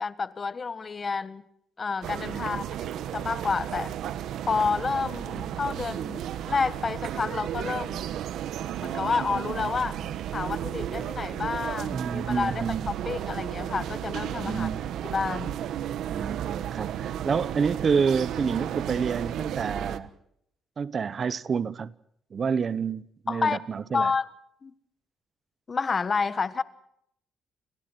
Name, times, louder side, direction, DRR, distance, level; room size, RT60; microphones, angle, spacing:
voice 1, 0.0-1.4 1.8-4.0 4.5-8.1 8.8-10.0 10.3-14.7 15.0-15.6 23.3-23.6 23.9-24.2 24.6-24.7 25.7-26.6, left 5 dB, 35° left, 1.4 m, -29 dB
sound 1, 2.0-20.0, right 10 dB, 80° right, 1.3 m, -33 dB
voice 2, 11.9-13.0 14.4-14.9 16.1-20.1 20.8-21.9 22.3-24.1, right 6 dB, 45° right, 0.9 m, -28 dB
29.5 x 25.0 x 4.5 m
cardioid pair, 90°, 0 cm